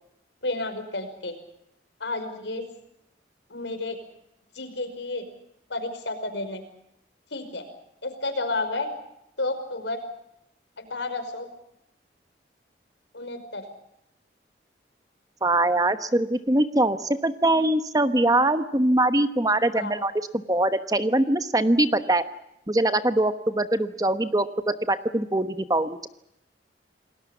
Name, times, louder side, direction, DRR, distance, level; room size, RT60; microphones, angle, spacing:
voice 1, 0.4-1.3 2.0-2.6 3.5-4.0 4.6-5.2 5.7-6.6 7.3-7.6 8.0-8.9 9.4-10.0 10.8-11.5 13.1-13.6 19.7-19.9, left 2 dB, 85° left, 8 dB, 5.2 m, -31 dB
voice 2, 15.4-20.1 20.5-22.2 22.7-26.1, right 1 dB, 20° right, 11 dB, 1.1 m, -22 dB
28.5 x 20.0 x 7.2 m, 0.80 s
head